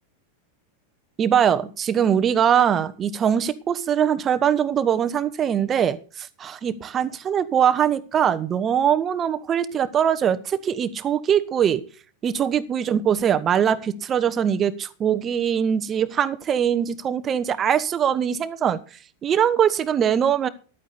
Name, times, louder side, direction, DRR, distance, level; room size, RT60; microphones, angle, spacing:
voice 1, 1.2-11.8 12.2-18.8 19.2-20.5, right 8 dB, 25° right, 12 dB, 1.1 m, -22 dB
14.5 x 11.0 x 4.1 m, 0.38 s
figure-of-eight pair, 90°, 0 cm